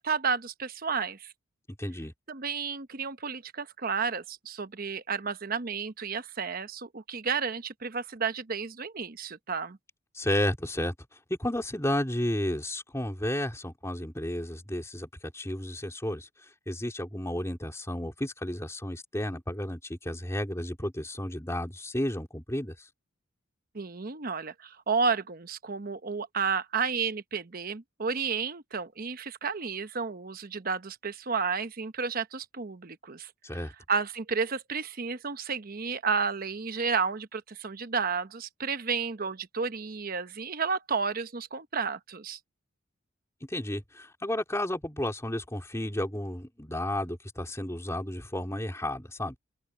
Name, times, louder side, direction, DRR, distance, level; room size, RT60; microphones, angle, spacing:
voice 1, 0.0-1.3 2.3-9.8 23.7-33.6 33.9-42.4, right 5 dB, 45° right, 0.9 m, -32 dB
voice 2, 1.8-2.1 10.1-10.9 11.3-16.3 16.7-22.9 33.4-33.7 43.5-49.4, left 1 dB, 15° left, 3.6 m, -32 dB
open air
head